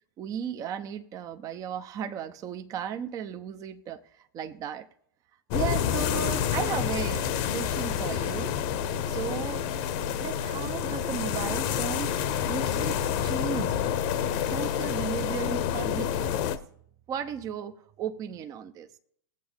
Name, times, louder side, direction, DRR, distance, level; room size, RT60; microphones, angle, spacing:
voice 1, 0.2-4.9 5.5-8.6 9.1-9.7 10.2-12.2 12.5-13.8 14.5-16.5 17.1-18.9, right 8 dB, 30° right, 0.7 m, -35 dB
sound 1, 5.5-16.6, left 9 dB, 45° left, 0.8 m, -28 dB
20.5 x 7.8 x 3.5 m
figure-of-eight pair, 100°, 12 cm